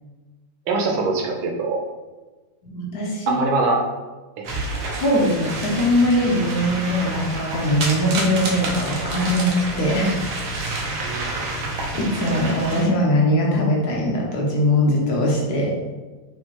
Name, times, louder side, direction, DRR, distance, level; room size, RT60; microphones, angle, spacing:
voice 1, 0.7-1.8 3.3-3.8 4.4-4.5 11.0-11.3, right 3 dB, 90° right, 1 dB, 1.6 m, -22 dB
voice 2, 2.6-3.4 5.0-10.3 11.9-15.8, left 1 dB, 65° left, -2 dB, 1.1 m, -21 dB
sound 1, 4.4-12.8, right 2 dB, 65° right, 1.3 m, -29 dB
4.6 x 3.6 x 2.9 m, 1.3 s
omnidirectional pair, 2.1 m